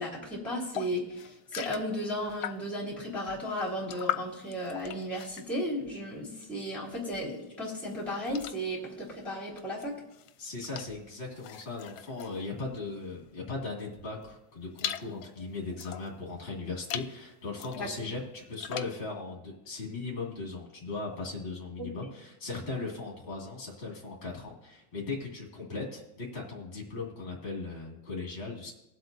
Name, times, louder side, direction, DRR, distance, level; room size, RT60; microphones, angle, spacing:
voice 1, 0.0-9.9 17.7-17.9 21.8-21.9, equal, ahead, -5 dB, 3.1 m, -35 dB
sound 1, 0.7-2.9 3.3-6.7 7.0-13.3 13.8-16.2 16.7-17.2 17.6-19.0, left 12 dB, 80° left, 1.4 m, -41 dB
voice 2, 10.4-28.7, left 3 dB, 30° left, -2 dB, 2.3 m, -38 dB
20.0 x 7.8 x 2.7 m, 0.93 s
omnidirectional pair, 2.3 m